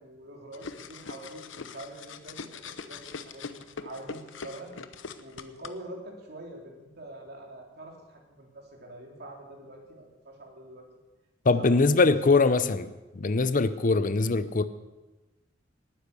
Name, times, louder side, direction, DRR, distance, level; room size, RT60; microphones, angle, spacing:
voice 1, 0.0-4.7 5.2-10.9 11.6-11.8 12.0-12.6, right 1 dB, 55° right, 0 dB, 3.7 m, -45 dB
sound 1, 0.5-5.7, left 4 dB, 80° left, 0.9 m, -42 dB
voice 2, 11.5-12.9 13.1-14.6, left 3 dB, 45° left, 13 dB, 0.6 m, -22 dB
19.0 x 10.0 x 6.7 m, 1.1 s
head